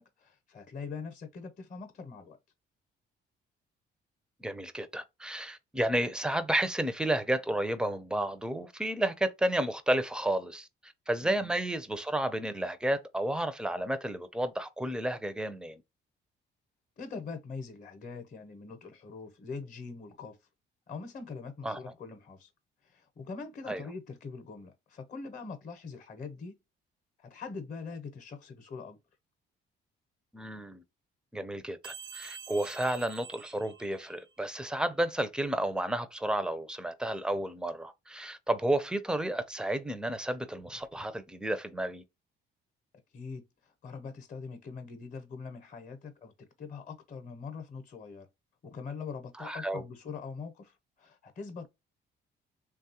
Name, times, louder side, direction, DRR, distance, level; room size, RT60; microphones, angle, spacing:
voice 1, 0.0-2.4 11.2-11.5 17.0-20.4 20.9-22.5 22.8-26.5 27.2-29.0 43.1-46.3 46.6-48.3 48.6-51.7, left 4 dB, 45° left, 0.7 m, -43 dB
voice 2, 4.4-15.8 21.6-21.8 23.7-23.8 30.3-30.8 31.3-42.0 49.4-49.8, right 1 dB, 5° right, 0.4 m, -32 dB
sound 1, 31.8-34.4, right 7 dB, 70° right, 0.6 m, -47 dB
3.1 x 2.3 x 2.8 m
cardioid pair, 90°, 20 cm